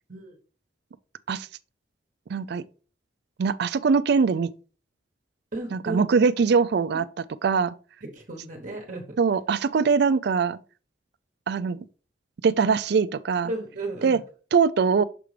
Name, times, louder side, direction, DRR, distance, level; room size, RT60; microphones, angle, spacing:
voice 1, 2.3-2.6 3.4-4.5 5.7-7.0 7.4-7.7 9.2-10.6 11.5-11.8 12.4-13.5 14.0-14.2 14.5-15.0, right 5 dB, 60° right, 0.4 m, -22 dB
voice 2, 5.5-6.0 8.0-9.2 13.4-14.2, right 2 dB, 45° right, 1.0 m, -34 dB
6.7 x 5.1 x 3.2 m
head